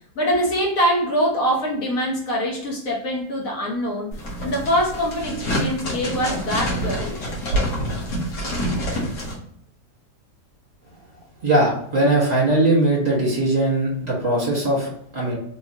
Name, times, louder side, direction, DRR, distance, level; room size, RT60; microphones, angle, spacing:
voice 1, 0.1-7.3, equal, 60° left, -3 dB, 1.3 m, -24 dB
sound 1, 4.1-9.3, equal, 85° left, 1.8 m, -26 dB
voice 2, 11.4-15.4, right 1 dB, 25° right, -5 dB, 1.3 m, -20 dB
3.5 x 3.0 x 2.7 m, 0.69 s
omnidirectional pair, 1.8 m